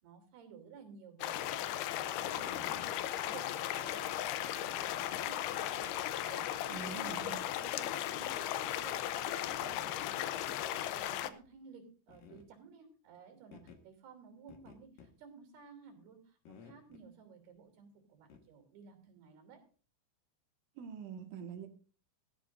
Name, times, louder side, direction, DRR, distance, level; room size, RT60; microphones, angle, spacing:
voice 1, 0.0-19.6, right 6 dB, 55° right, 5 dB, 4.9 m, -56 dB
sound 1, 1.2-11.3, left 12 dB, 80° left, 2.3 m, -36 dB
sound 2, 2.2-3.0 3.9-4.0 5.0-5.3 6.4-6.5 6.8-7.5 7.8-7.9 9.5-10.1 10.4-10.7 11.0-11.1 11.4-11.5 12.1-12.5 13.5-13.8 14.5-15.1 16.5-17.0 18.3-18.4, left 6 dB, 60° left, 2.8 m, -53 dB
voice 2, 6.7-7.5 20.8-21.7, right 6 dB, 80° right, 5 dB, 4.1 m, -44 dB
17.5 x 14.5 x 2.6 m, 0.37 s
omnidirectional pair, 5.5 m